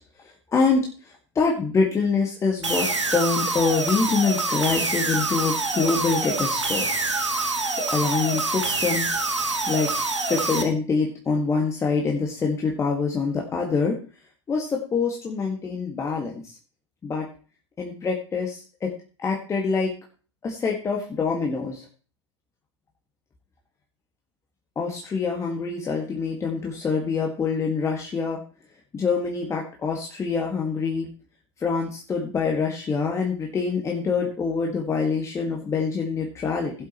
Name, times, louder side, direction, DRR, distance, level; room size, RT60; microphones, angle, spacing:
voice 1, 0.2-6.9 7.8-9.1 9.7-9.9 10.3-14.0 14.5-16.4 17.0-17.3 17.8-18.9 19.2-19.9 20.4-21.9 24.8-28.4 28.9-31.1 31.6-36.7, left 5 dB, 20° left, 0 dB, 2.0 m, -25 dB
sound 1, 2.6-10.6, right 3 dB, 80° right, 1.7 m, -26 dB
16.5 x 8.1 x 3.1 m, 0.38 s
figure-of-eight pair, 85°, 15 cm